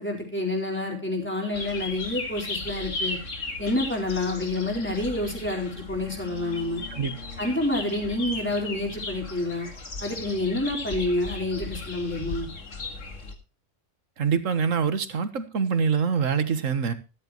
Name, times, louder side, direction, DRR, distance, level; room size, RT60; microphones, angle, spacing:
voice 1, 0.0-3.2 3.6-6.8 7.4-9.7 10.0-12.5, left 2 dB, 10° left, 0 dB, 4.4 m, -28 dB
sound 1, 1.5-13.3, left 3 dB, 75° left, 2.4 m, -36 dB
voice 2, 14.2-16.9, right 6 dB, 90° right, 11 dB, 1.7 m, -25 dB
13.5 x 13.5 x 3.1 m, 0.31 s
omnidirectional pair, 1.3 m